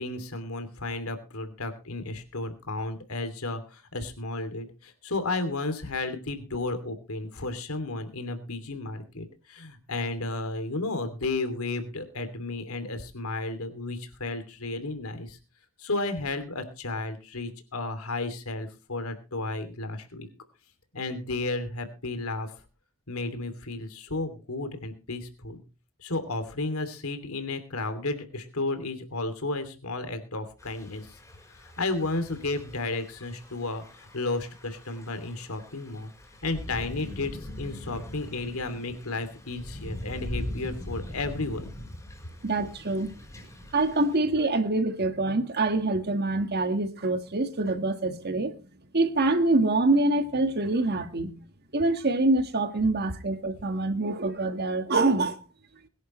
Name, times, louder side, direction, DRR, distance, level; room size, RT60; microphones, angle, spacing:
voice 1, 0.0-15.4 15.8-20.3 20.9-22.5 23.1-25.6 26.0-31.1 31.5-36.1 36.4-41.7, left 2 dB, 80° left, 2.8 m, -33 dB
Thunder / Rain, 30.6-44.2, left 1 dB, 15° left, 4.4 m, -41 dB
voice 2, 42.4-43.1 43.7-48.5 48.9-51.3 51.7-55.4, right 2 dB, 50° right, 1.7 m, -25 dB
22.0 x 11.0 x 3.2 m
head